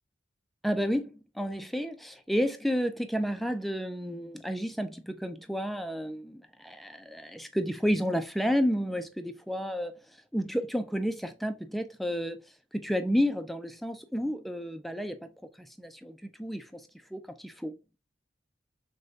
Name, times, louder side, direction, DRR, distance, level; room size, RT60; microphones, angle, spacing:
voice 1, 0.6-9.9 10.3-12.4 12.7-15.3 15.8-16.8 17.1-17.7, equal, ahead, 0.4 m, -31 dB
6.3 x 2.2 x 2.7 m
head